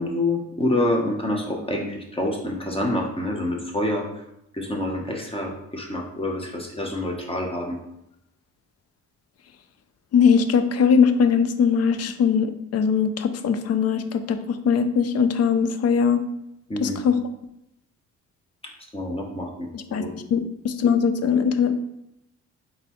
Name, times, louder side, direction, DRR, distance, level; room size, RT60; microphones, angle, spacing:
voice 1, 0.0-4.1 4.5-7.8 16.7-17.0 18.9-20.1, left 1 dB, 20° left, 0 dB, 0.8 m, -27 dB
voice 2, 10.1-16.2 16.8-17.1 19.7-21.7, left 6 dB, 55° left, 10 dB, 0.5 m, -21 dB
4.0 x 3.5 x 3.0 m, 0.83 s
cardioid pair, 90°, 30 cm